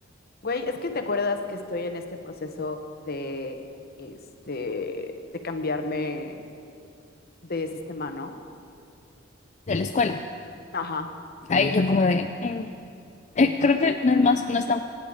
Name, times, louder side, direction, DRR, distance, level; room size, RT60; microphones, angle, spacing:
voice 1, 0.4-3.6 4.0-4.2 4.4-5.1 5.4-6.4 7.4-8.4 10.7-11.1, left 3 dB, 55° left, 6 dB, 1.2 m, -31 dB
voice 2, 9.7-10.2 11.5-12.7 13.4-14.8, left 3 dB, 35° left, 7 dB, 0.5 m, -22 dB
23.5 x 10.0 x 5.1 m, 2.4 s
head